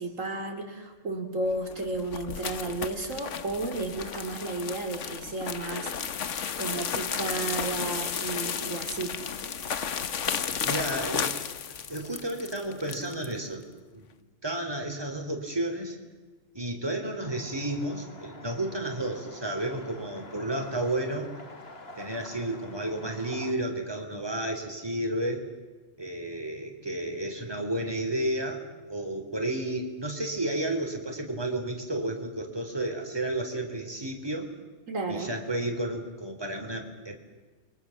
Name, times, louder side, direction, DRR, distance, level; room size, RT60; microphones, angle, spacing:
voice 1, 0.0-5.9 6.6-9.2 34.9-35.3, right 2 dB, 85° right, 4 dB, 3.4 m, -33 dB
sound 1, 1.6-13.3, left 7 dB, 70° left, 1.4 m, -33 dB
voice 2, 10.6-11.3 11.9-13.6 13.9-14.1 14.4-16.0 16.5-21.3 22.0-25.5 26.0-34.5 35.1-37.2, right 1 dB, 20° right, 3 dB, 3.8 m, -32 dB
sound 2, 17.2-23.5, left 2 dB, 50° left, 2.6 m, -48 dB
30.0 x 23.5 x 7.3 m, 1.3 s
omnidirectional pair, 1.3 m